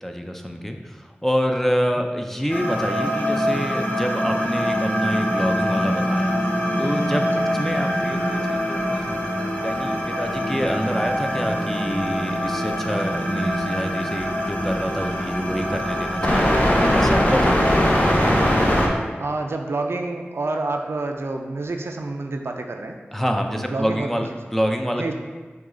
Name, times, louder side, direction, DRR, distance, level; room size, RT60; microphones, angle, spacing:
voice 1, 0.0-6.3 6.8-9.2 9.6-16.6 16.9-17.7 23.1-25.1, equal, 5° left, 3 dB, 0.4 m, -27 dB
sound 1, 2.5-18.9, equal, 40° left, 0.9 m, -22 dB
voice 2, 19.2-23.0 23.5-24.2 24.9-25.1, right 2 dB, 75° right, 3 dB, 0.4 m, -28 dB
6.1 x 2.3 x 3.7 m, 1.4 s
wide cardioid pair, 45°, 4 cm